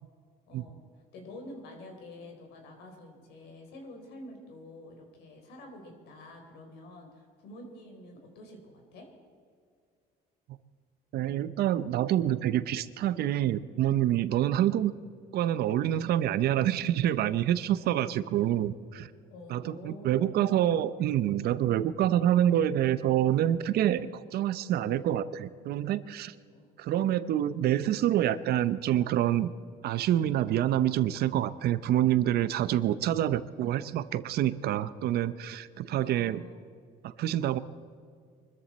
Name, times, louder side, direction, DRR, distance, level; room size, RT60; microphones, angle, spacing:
voice 1, 0.5-9.1 19.3-20.6 26.5-26.7 26.9-27.2 35.9-36.6, left 1 dB, 80° left, 3 dB, 3.9 m, -48 dB
voice 2, 11.1-14.9 15.3-19.1 19.5-26.3 26.8-29.5 29.8-36.5 37.0-37.6, right 12 dB, 70° right, 15 dB, 0.7 m, -27 dB
24.0 x 14.0 x 4.2 m, 2.2 s
cardioid pair, 110°, 17 cm